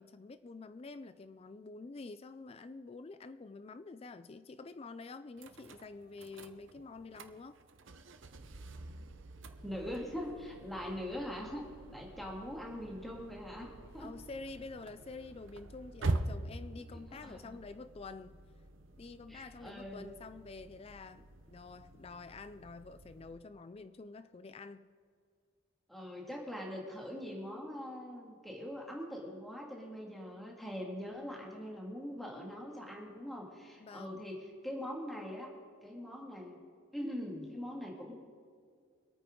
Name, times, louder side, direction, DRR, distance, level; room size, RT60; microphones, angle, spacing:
voice 1, 0.0-7.6 14.0-18.4 19.0-24.9 33.8-34.2, left 3 dB, 30° left, 12 dB, 0.3 m, -48 dB
sound 1, 5.4-23.3, right 2 dB, 65° right, 0.9 m, -45 dB
voice 2, 9.6-11.6 11.9-14.1 16.9-17.4 19.3-20.0 25.9-35.5 35.8-36.5 36.9-38.1, equal, ahead, -2 dB, 2.1 m, -42 dB
25.0 x 9.2 x 3.8 m, 2.1 s
head